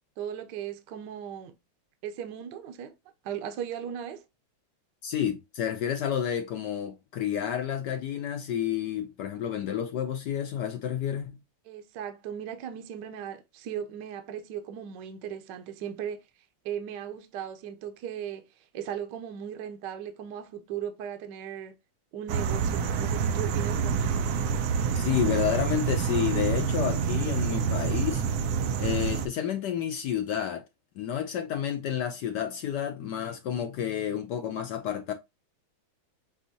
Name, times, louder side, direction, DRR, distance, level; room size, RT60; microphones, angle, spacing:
voice 1, 0.2-1.5 2.0-2.9 3.2-4.2 11.6-16.3 16.6-21.8 22.1-24.3, right 9 dB, 70° right, 1.2 m, -37 dB
voice 2, 5.0-11.4 24.9-28.2 28.8-30.6 31.0-35.1, left 9 dB, 75° left, 1.0 m, -30 dB
sound 1, 22.3-29.3, right 6 dB, 85° right, 0.8 m, -27 dB
6.2 x 2.6 x 2.6 m
omnidirectional pair, 2.2 m